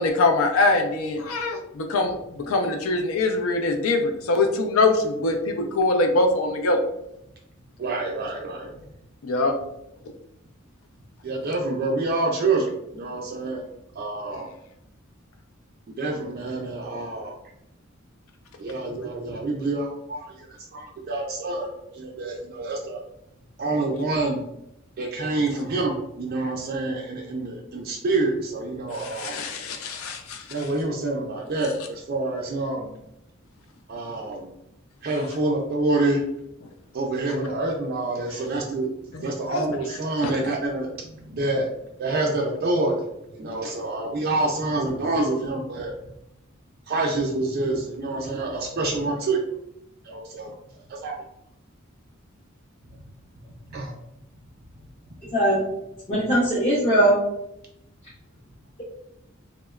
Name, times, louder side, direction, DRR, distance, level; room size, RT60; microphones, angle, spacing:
voice 1, 0.0-6.8 9.2-9.5 28.9-30.7 37.3-37.4 39.1-39.7 40.2-40.3, left 2 dB, 85° left, 4 dB, 0.4 m, -23 dB
voice 2, 7.8-8.7 11.2-13.7 14.0-14.5 16.0-17.4 18.6-23.0 23.6-24.4 25.0-29.4 30.5-32.9 33.9-34.5 35.0-36.2 36.9-38.9 39.2-40.9 41.3-41.7 42.0-42.9 43.3-45.9 46.9-49.4 50.1-50.5 50.9-51.2 53.7-53.9, right 2 dB, 50° right, -1 dB, 0.4 m, -27 dB
voice 3, 55.3-55.6 56.1-57.2, right 1 dB, 30° left, -9 dB, 0.6 m, -19 dB
2.9 x 2.1 x 2.2 m, 0.80 s
head